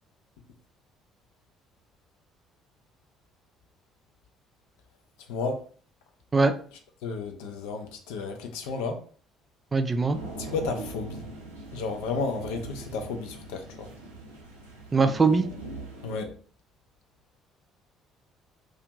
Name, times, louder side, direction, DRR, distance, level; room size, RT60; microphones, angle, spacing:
voice 1, 7.0-9.0 10.4-11.2 11.7-13.9 16.0-16.3, left 4 dB, 65° left, 0.4 m, -32 dB
voice 2, 9.7-10.2 14.9-15.5, right 4 dB, 25° right, 0.4 m, -21 dB
sound 1, 10.1-16.2, right 2 dB, 90° right, 0.6 m, -41 dB
2.5 x 2.4 x 2.9 m
figure-of-eight pair, 50°, 0 cm